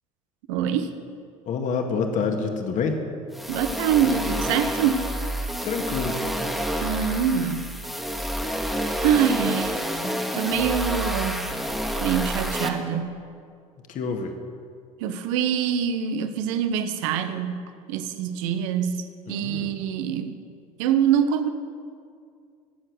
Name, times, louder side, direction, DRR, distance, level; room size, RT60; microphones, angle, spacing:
voice 1, 0.5-1.0 3.5-5.1 6.8-7.7 9.0-9.8 10.3-11.4 12.0-13.2 15.0-20.4 20.8-21.5, right 8 dB, 65° right, 9 dB, 1.1 m, -25 dB
voice 2, 1.5-3.0 5.6-6.2 13.9-14.3 19.3-19.7, left 5 dB, 45° left, 4 dB, 2.0 m, -27 dB
sound 1, 3.3-12.7, equal, ahead, 1.9 m, -28 dB
21.0 x 7.7 x 6.6 m, 2.3 s
figure-of-eight pair, 70°, 18 cm